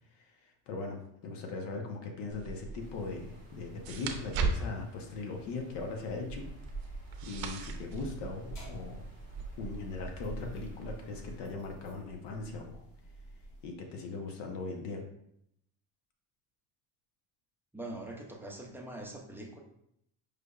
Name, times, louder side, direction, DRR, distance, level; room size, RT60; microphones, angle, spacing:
voice 1, 0.2-6.5 7.2-9.0 9.6-12.8 13.6-15.0, left 3 dB, 80° left, 2 dB, 0.9 m, -39 dB
sound 1, 2.3-9.4, right 4 dB, 60° right, 0.6 m, -39 dB
sound 2, 2.8-11.4, right 3 dB, 20° left, 1.0 m, -46 dB
sound 3, 8.5-13.7, right 1 dB, 55° left, 1.1 m, -53 dB
voice 2, 17.7-19.6, right 1 dB, 5° right, -1 dB, 0.4 m, -43 dB
5.0 x 3.3 x 2.3 m, 0.75 s
cardioid pair, 135°, 41 cm